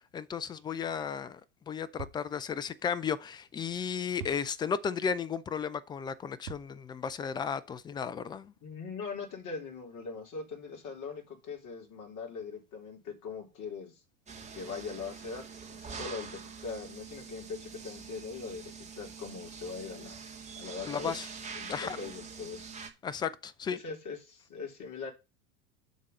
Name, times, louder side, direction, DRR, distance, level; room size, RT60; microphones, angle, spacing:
voice 1, 0.1-1.4 1.7-8.5 20.9-21.3 21.7-22.0 23.0-23.8, left 7 dB, 10° left, 0.3 m, -34 dB
sound 1, 2.0-2.6 4.2-5.0 6.4-7.3, right 6 dB, 85° right, 1.8 m, -46 dB
voice 2, 8.6-14.0 14.6-20.2 20.5-21.2 21.5-22.7 23.7-25.1, left 5 dB, 45° left, 3.7 m, -41 dB
sound 2, 14.3-22.9, right 5 dB, 15° right, 1.9 m, -45 dB
11.0 x 3.7 x 5.4 m
hypercardioid pair, 95°, 43 cm